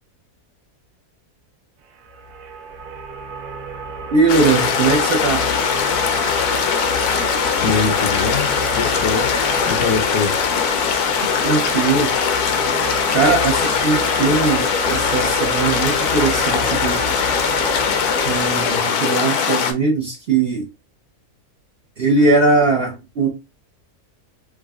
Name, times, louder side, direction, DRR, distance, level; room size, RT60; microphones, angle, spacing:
sound 1, 2.0-18.8, right 3 dB, 85° right, 1.2 m, -29 dB
voice 1, 4.1-5.4 11.4-12.1 13.1-17.0 18.1-20.7 22.0-23.3, right 3 dB, 60° right, 0.6 m, -19 dB
sound 2, 4.3-19.7, left 7 dB, 90° left, 1.2 m, -20 dB
voice 2, 7.6-9.3 9.7-10.4, left 5 dB, 65° left, 0.9 m, -23 dB
4.7 x 2.1 x 2.2 m
omnidirectional pair, 1.6 m